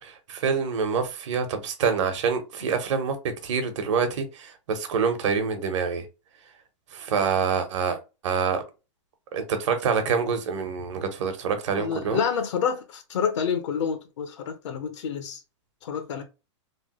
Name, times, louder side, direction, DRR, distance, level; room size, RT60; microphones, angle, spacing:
voice 1, 0.0-3.2 3.4-6.0 6.9-8.0 8.2-8.6 9.3-12.2, right 6 dB, 75° right, 1.0 m, -26 dB
voice 2, 11.8-15.4 15.8-16.2, left 7 dB, 75° left, 0.8 m, -28 dB
3.2 x 2.2 x 3.0 m
supercardioid pair, 145°, 16 cm